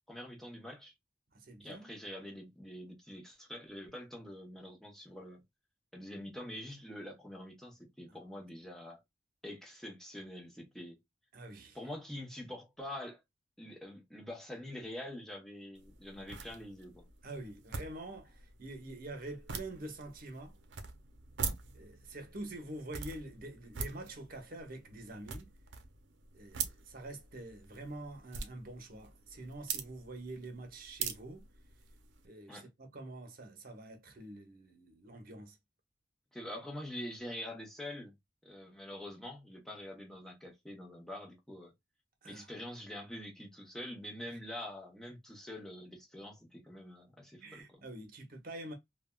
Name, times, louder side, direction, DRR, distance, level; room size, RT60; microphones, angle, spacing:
voice 1, 0.1-0.9 1.6-5.4 5.9-9.0 9.4-11.0 11.7-13.2 13.6-17.1 32.5-32.7 36.3-38.1 38.4-41.7 42.2-47.8, left 1 dB, 5° left, 0.8 m, -45 dB
voice 2, 1.3-1.9 8.1-8.2 11.3-11.8 17.2-20.6 21.7-25.5 26.3-31.4 32.2-35.6 42.2-42.5 44.3-44.4 47.4-48.7, right 2 dB, 55° right, 0.8 m, -46 dB
sound 1, 15.7-32.3, right 6 dB, 85° right, 0.6 m, -44 dB
3.3 x 2.2 x 2.2 m
head